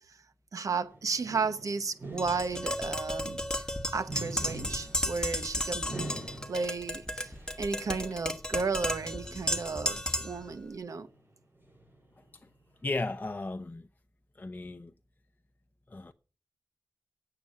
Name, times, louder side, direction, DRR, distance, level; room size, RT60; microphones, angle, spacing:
voice 1, 0.5-5.9 6.5-11.1, right 4 dB, 75° right, 0.9 m, -34 dB
sound 1, 0.9-8.7 9.0-9.3 10.2-13.3, right 2 dB, 40° right, 7.2 m, -45 dB
Tap, 2.2-10.4, left 1 dB, 15° left, 1.3 m, -34 dB
voice 2, 12.8-13.9 14.4-14.9 15.9-16.1, left 2 dB, 30° left, 0.6 m, -35 dB
8.6 x 6.8 x 7.5 m
wide cardioid pair, 70°, 6 cm